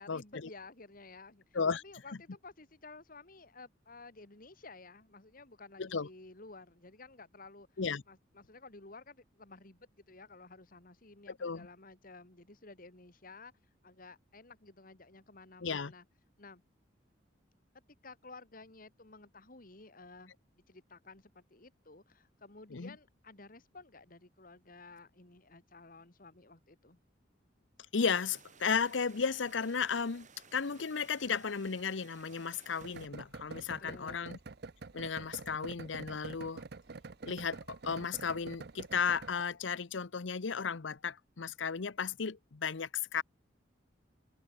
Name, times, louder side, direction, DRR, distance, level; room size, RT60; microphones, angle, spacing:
voice 1, 0.0-7.7 8.1-13.5 13.8-16.0 16.4-16.6 18.0-27.0 33.8-34.4, left 3 dB, 50° left, 2.4 m, -53 dB
voice 2, 15.6-15.9 22.7-22.9 27.9-30.3 30.5-34.4 34.9-36.6 37.3-43.2, left 6 dB, 90° left, 0.8 m, -34 dB
sound 1, 28.0-33.1, right 5 dB, 40° right, 5.7 m, -58 dB
sound 2, 32.8-39.4, right 3 dB, 60° right, 0.8 m, -46 dB
head